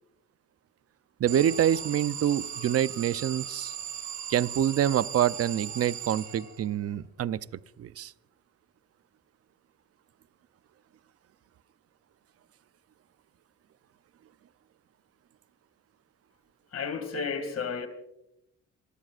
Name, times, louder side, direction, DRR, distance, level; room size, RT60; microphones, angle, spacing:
voice 1, 1.2-3.7 4.3-7.4 7.8-8.1, right 10 dB, 55° right, 0.7 m, -26 dB
Alarm, 1.3-6.8, right 9 dB, 75° right, 5.8 m, -38 dB
voice 2, 16.7-17.9, left 5 dB, 60° left, 2.5 m, -32 dB
26.0 x 19.5 x 2.5 m
cardioid pair, 90°, 29 cm